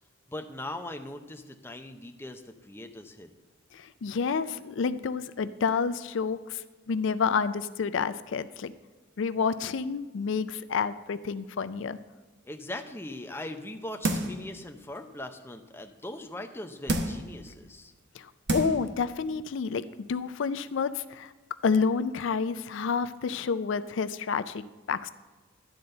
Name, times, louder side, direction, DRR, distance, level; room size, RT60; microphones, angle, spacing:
voice 1, 0.3-3.3 12.5-17.9, left 1 dB, 10° left, 5 dB, 0.6 m, -40 dB
voice 2, 3.7-8.7 9.2-12.0 18.1-21.3 21.6-25.1, left 5 dB, 65° left, 13 dB, 0.4 m, -29 dB
sound 1, 14.0-14.5 15.0-15.1 16.9-17.3 18.0-18.1 18.5-18.9 19.3-19.4, right 1 dB, 55° right, 0.9 m, -29 dB
12.0 x 4.0 x 7.7 m, 1.3 s
head